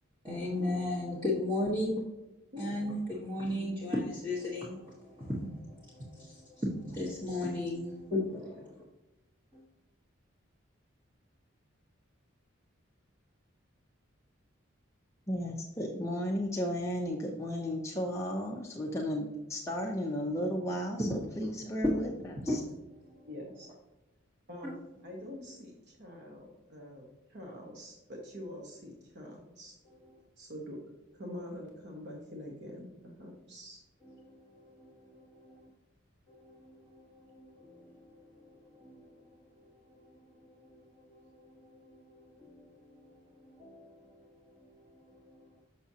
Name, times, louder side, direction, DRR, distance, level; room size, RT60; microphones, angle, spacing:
voice 1, 0.2-2.0 2.6-8.9 9.5-9.7 21.0-21.7 22.2-23.3 24.6-24.7 30.1-30.2 34.0-35.7 36.3-45.6, left 1 dB, 20° right, -7 dB, 1.2 m, -38 dB
voice 2, 15.3-22.1 22.4-22.6, equal, 15° left, -1 dB, 0.5 m, -34 dB
voice 3, 23.3-23.7 24.5-29.8 30.4-33.8, left 1 dB, 55° right, -1 dB, 1.1 m, -45 dB
6.7 x 6.0 x 2.8 m, 1.0 s
head